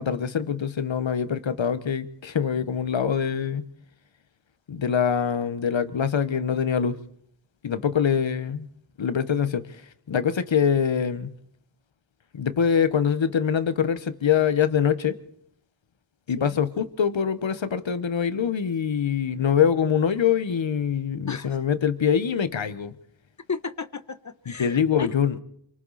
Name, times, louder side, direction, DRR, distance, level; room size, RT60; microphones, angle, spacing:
voice 1, 0.0-3.6 4.7-7.0 7.6-8.7 9.0-9.8 10.1-11.3 12.3-15.2 16.3-22.9 24.6-25.4, left 7 dB, 70° left, 1.3 m, -24 dB
voice 2, 23.5-25.1, left 5 dB, 35° left, 1.3 m, -34 dB
27.5 x 24.5 x 4.2 m
wide cardioid pair, 90°, 47 cm